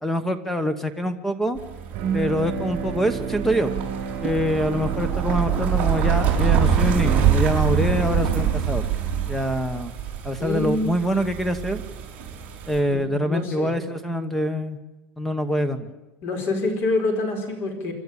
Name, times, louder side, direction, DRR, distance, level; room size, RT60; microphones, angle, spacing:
voice 1, 0.0-1.6 2.1-3.7 4.2-8.8 9.3-9.9 10.2-11.8 12.7-14.8 15.2-15.9, equal, 5° left, 12 dB, 1.1 m, -25 dB
sound 1, 1.6-12.8, right 8 dB, 30° right, 5.0 m, -25 dB
Bowed string instrument, 1.9-7.4, right 6 dB, 50° right, 5.4 m, -32 dB
voice 2, 10.4-10.9 12.9-13.7 16.2-17.9, left 2 dB, 40° left, 7 dB, 4.7 m, -26 dB
27.5 x 12.5 x 8.8 m, 1.1 s
cardioid pair, 165°, 6 cm